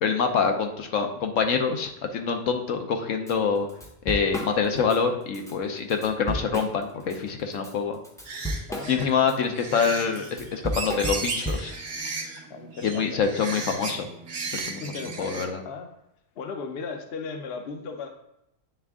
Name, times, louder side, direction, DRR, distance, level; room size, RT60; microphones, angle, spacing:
voice 1, 0.0-3.7 4.0-8.0 8.9-11.7 12.8-14.1 14.6-14.8 15.2-15.6, left 6 dB, 75° left, 4 dB, 1.1 m, -25 dB
Drum kit / Drum, 3.3-3.4 3.7-5.0 5.3-5.5 5.9-7.2 7.5-11.9, equal, 5° left, 0.6 m, -33 dB
sound 1, 8.3-15.4, right 3 dB, 55° right, 1.1 m, -36 dB
voice 2, 8.7-9.1 12.5-13.2 14.8-15.9 16.4-18.1, left 4 dB, 55° left, 5 dB, 0.9 m, -36 dB
9.0 x 3.6 x 3.6 m, 0.83 s
omnidirectional pair, 1.4 m